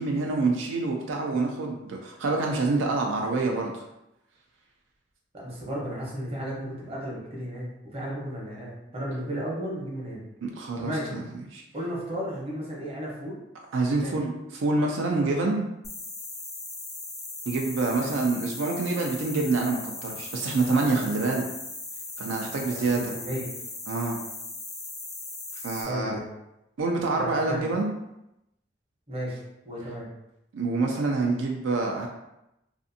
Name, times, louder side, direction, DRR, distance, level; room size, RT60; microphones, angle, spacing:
voice 1, 0.0-3.8 10.4-11.2 11.5-11.6 13.7-15.7 17.5-21.5 22.2-23.1 23.9-24.2 25.6-26.2 26.8-27.9 30.5-32.1, right 3 dB, 85° right, 0 dB, 0.4 m, -26 dB
voice 2, 5.3-10.2 10.8-11.2 11.7-13.4 14.0-14.2 17.9-18.1 22.5-23.5 25.8-26.4 27.2-27.6 29.1-30.1, equal, 30° right, -4 dB, 0.8 m, -34 dB
sound 1, 15.8-25.8, left 2 dB, 15° left, 0.4 m, -38 dB
2.5 x 2.4 x 2.6 m, 0.87 s
head